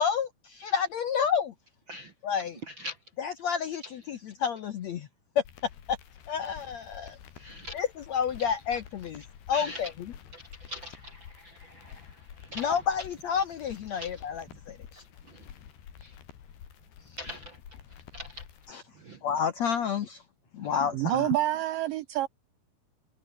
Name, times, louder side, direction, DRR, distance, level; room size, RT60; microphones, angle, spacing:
voice 1, 0.0-1.5 2.2-2.6 3.2-5.1 5.4-5.5 5.9-6.0 6.3-7.2 7.7-9.2 9.5-10.1 12.5-15.0 18.7-18.8 19.2-20.2 20.5-21.3, left 7 dB, 65° left, 1.7 m, -30 dB
sound 1, 5.5-18.7, left 9 dB, 85° left, 5.0 m, -49 dB
voice 2, 7.4-7.8 9.5-9.9 10.3-12.7 13.9-14.1 15.3-15.4 16.0-16.1 17.2-17.6 18.1-18.4 19.0-19.2 20.6-20.7, left 1 dB, 55° right, 1.3 m, -42 dB
voice 3, 20.9-22.3, right 14 dB, 80° right, 2.0 m, -27 dB
omnidirectional pair, 4.6 m